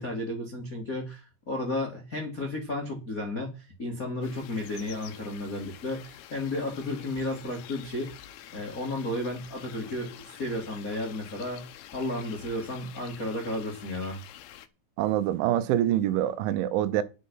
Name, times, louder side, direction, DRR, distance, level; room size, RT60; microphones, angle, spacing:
voice 1, 0.0-8.1 8.5-11.6 11.9-14.2, left 1 dB, 45° left, 1.0 m, -33 dB
sound 1, 4.2-14.7, left 11 dB, 75° left, 2.3 m, -48 dB
voice 2, 15.0-17.0, right 12 dB, 80° right, 3.0 m, -25 dB
10.5 x 8.4 x 5.6 m
omnidirectional pair, 5.7 m